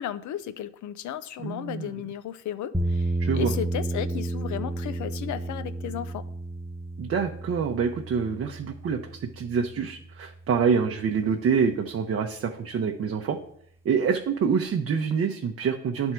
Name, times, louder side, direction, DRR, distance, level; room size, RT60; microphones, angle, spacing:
voice 1, 0.0-6.2, left 10 dB, 75° left, 13 dB, 0.6 m, -34 dB
voice 2, 1.4-1.9 3.2-3.5 7.0-9.0 9.4-13.4 13.8-16.1, right 6 dB, 50° right, 3 dB, 0.7 m, -26 dB
sound 1, 2.7-10.8, right 2 dB, 10° right, 0.6 m, -32 dB
10.5 x 3.6 x 4.4 m, 0.66 s
cardioid pair, 90°, 30 cm